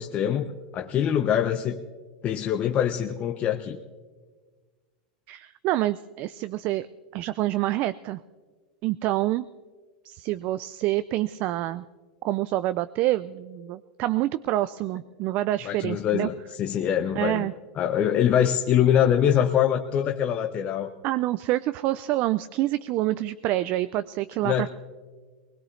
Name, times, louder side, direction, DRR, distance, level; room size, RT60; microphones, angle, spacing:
voice 1, 0.0-1.8 2.2-3.8 15.6-17.5 17.7-20.9 24.4-24.7, left 9 dB, 30° left, 5 dB, 0.7 m, -24 dB
voice 2, 5.3-6.9 7.1-8.2 8.8-9.4 10.0-11.8 12.2-16.3 17.2-17.5 21.0-24.7, right 15 dB, 40° right, 14 dB, 0.4 m, -27 dB
21.0 x 20.0 x 3.2 m, 1.4 s
supercardioid pair, 135°, 4 cm